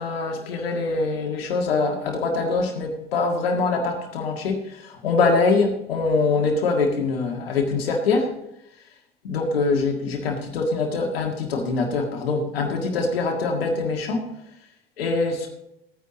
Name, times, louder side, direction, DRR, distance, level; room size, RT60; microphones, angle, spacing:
voice 1, 0.0-8.3 9.2-14.2 15.0-15.5, left 3 dB, 70° left, 2 dB, 1.8 m, -23 dB
14.5 x 9.4 x 3.9 m, 0.82 s
figure-of-eight pair, 65°, 30 cm